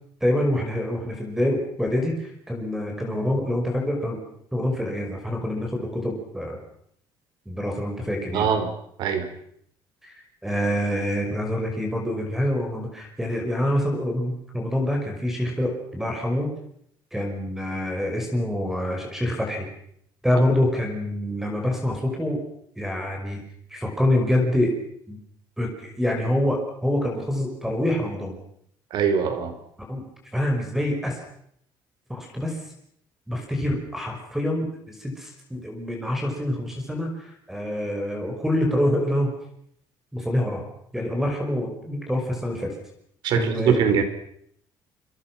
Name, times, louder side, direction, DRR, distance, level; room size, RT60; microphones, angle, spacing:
voice 1, 0.2-4.2 4.5-6.6 7.5-8.5 10.0-10.1 10.4-16.5 17.1-19.7 20.2-22.4 22.8-23.4 23.7-24.7 25.1-25.2 25.6-28.4 29.9-30.0 30.3-31.2 32.1-32.6 33.3-39.3 40.1-40.6 40.9-42.7 43.3-43.8, left 1 dB, 5° right, 2 dB, 5.4 m, -26 dB
voice 2, 8.3-8.7 9.0-9.3 28.9-29.5 43.2-44.0, right 7 dB, 65° right, 8 dB, 5.0 m, -22 dB
28.5 x 26.0 x 6.1 m, 0.70 s
cardioid pair, 170°, 8 cm